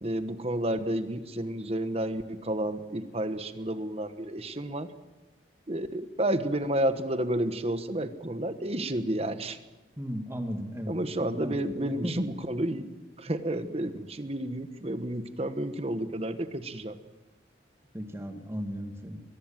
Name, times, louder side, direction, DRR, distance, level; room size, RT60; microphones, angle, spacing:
voice 1, 0.0-4.9 5.7-9.6 10.9-12.9 13.2-16.9, right 1 dB, 35° right, 10 dB, 1.2 m, -31 dB
voice 2, 10.0-10.9 11.3-12.1 17.9-19.2, equal, 15° right, 5 dB, 2.2 m, -35 dB
23.0 x 19.0 x 7.5 m, 1.1 s
head